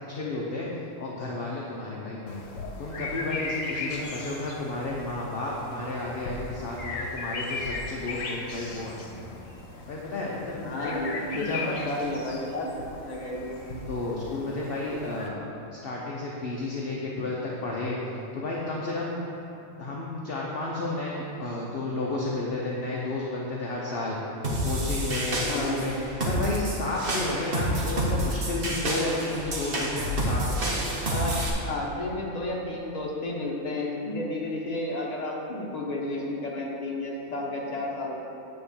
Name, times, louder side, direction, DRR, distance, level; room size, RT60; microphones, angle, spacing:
voice 1, 0.1-0.7 1.0-2.4 2.8-9.2 9.9-11.8 13.9-18.0 18.3-19.2 19.8-24.2 24.6-25.9 26.2-30.9, left 2 dB, 50° left, -3 dB, 1.0 m, -32 dB
sound 1, 2.3-15.3, left 3 dB, 70° left, 1.3 m, -37 dB
voice 2, 10.6-12.7 13.0-13.6 25.5-25.8 31.1-31.4 31.6-38.2, left 1 dB, 30° left, -3 dB, 1.2 m, -32 dB
sound 2, 24.4-31.5, right 1 dB, 45° right, 1.3 m, -29 dB
9.2 x 3.7 x 7.1 m, 2.9 s
omnidirectional pair, 1.4 m